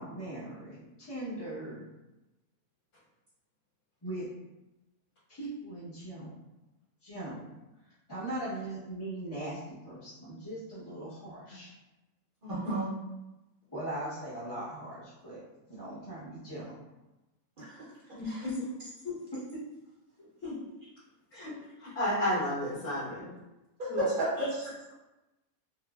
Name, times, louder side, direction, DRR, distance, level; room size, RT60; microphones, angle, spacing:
voice 1, 0.0-1.8 4.0-4.3 5.3-6.3 7.0-7.5 8.1-11.7 13.7-15.4 15.7-16.7, right 1 dB, 25° left, -11 dB, 0.5 m, -40 dB
voice 2, 12.4-12.9 17.6-17.8 18.2-18.5 23.8-24.6, right 1 dB, 50° right, -7 dB, 0.7 m, -32 dB
voice 3, 18.2-18.5 19.0-19.2 20.4-20.5 21.3-21.5 21.8-23.3 23.9-24.0, left 1 dB, 65° left, -12 dB, 1.4 m, -32 dB
3.4 x 2.0 x 2.2 m, 1.0 s
omnidirectional pair, 1.5 m